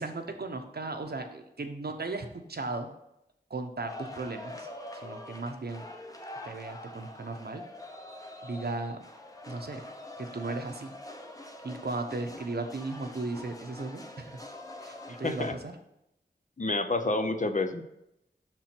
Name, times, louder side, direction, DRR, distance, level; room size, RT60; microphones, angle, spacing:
voice 1, 0.0-2.9 3.5-4.7 5.0-5.8 6.4-7.6 8.4-9.0 9.5-9.9 10.2-10.9 11.6-14.4 14.8-15.7, right 3 dB, 60° right, 6 dB, 0.8 m, -36 dB
sound 1, 3.9-15.6, left 1 dB, 20° left, 0.9 m, -45 dB
voice 2, 15.2-15.5 16.6-17.8, left 2 dB, 45° left, 7 dB, 0.7 m, -29 dB
6.1 x 4.5 x 5.9 m, 0.84 s
wide cardioid pair, 55°, 18 cm